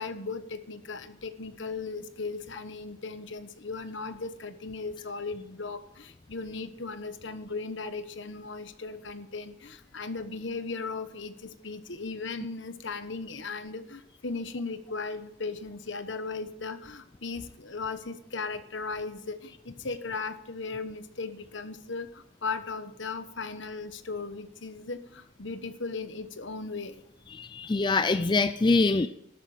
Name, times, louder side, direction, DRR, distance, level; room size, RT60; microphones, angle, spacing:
voice 1, 0.0-27.0, left 4 dB, 65° left, 10 dB, 1.2 m, -37 dB
voice 2, 27.3-29.1, left 3 dB, 25° left, 11 dB, 0.4 m, -24 dB
13.0 x 12.5 x 5.0 m, 0.80 s
head